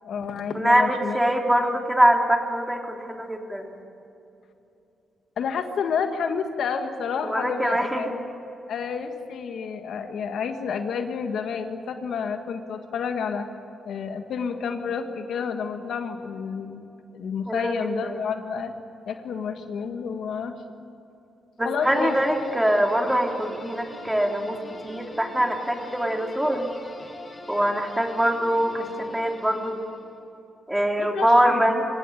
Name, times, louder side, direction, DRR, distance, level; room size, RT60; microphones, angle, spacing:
voice 1, 0.0-1.2 1.5-1.8 5.4-8.2 8.7-13.5 13.8-16.8 17.1-18.7 19.1-20.9 21.6-22.1 31.0-31.8, left 6 dB, 75° left, 6 dB, 1.7 m, -30 dB
voice 2, 0.5-3.8 7.2-8.2 17.5-18.2 21.6-26.7 27.5-29.8 30.7-31.8, right 1 dB, 5° right, 2 dB, 3.2 m, -23 dB
sound 1, 21.8-30.2, left 2 dB, 30° left, 5.7 m, -43 dB
25.0 x 16.5 x 9.9 m, 2.8 s
cardioid pair, 70°, 0 cm